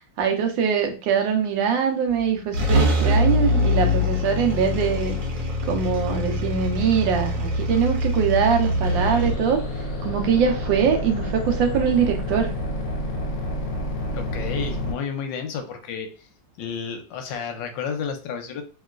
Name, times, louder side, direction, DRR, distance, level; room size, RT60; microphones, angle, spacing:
voice 1, 0.2-5.2 5.7-9.6 10.0-12.5, right 7 dB, 90° right, 4 dB, 1.4 m, -22 dB
sound 1, 2.1-2.2 2.5-9.3, left 1 dB, 60° right, 1.3 m, -23 dB
sound 2, 8.8-14.9, left 1 dB, 50° left, 1.0 m, -29 dB
voice 2, 14.1-16.1 16.6-18.6, left 6 dB, 85° left, 6 dB, 1.3 m, -31 dB
3.1 x 2.9 x 2.4 m, 0.35 s
omnidirectional pair, 2.0 m